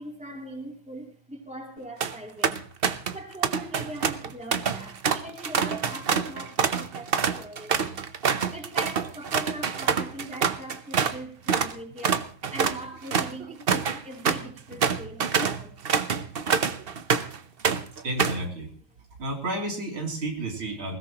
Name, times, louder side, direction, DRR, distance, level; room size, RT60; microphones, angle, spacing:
voice 1, 0.0-2.6 3.1-8.0 8.5-15.8, right 1 dB, 5° right, 3.1 m, -41 dB
sound 1, 1.8-2.1 2.4-3.2 3.4-11.2 11.5-11.7 12.0-17.4 17.6-18.5, right 6 dB, 55° right, 0.6 m, -26 dB
voice 2, 18.0-18.7 19.2-21.0, right 1 dB, 85° right, 4.2 m, -31 dB
20.5 x 17.0 x 3.0 m
omnidirectional pair, 2.2 m